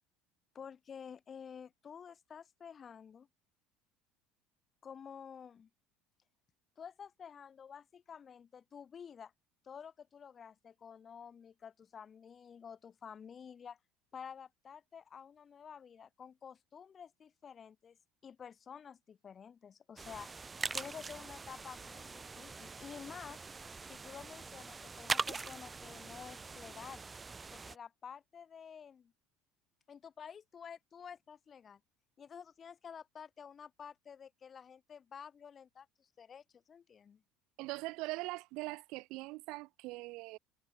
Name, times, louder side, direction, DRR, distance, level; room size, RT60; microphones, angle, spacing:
voice 1, 0.5-3.3 4.8-5.7 6.8-9.3 9.6-13.8 14.1-18.0 18.2-20.3 20.7-23.4 23.8-27.0 27.5-29.1 29.9-31.8 32.2-37.2, left 7 dB, 30° left, 3.4 m, -51 dB
sound 1, 20.0-27.7, right 4 dB, 20° right, 0.4 m, -42 dB
voice 2, 37.6-40.4, right 23 dB, 70° right, 0.6 m, -41 dB
cardioid pair, 125°, 0 cm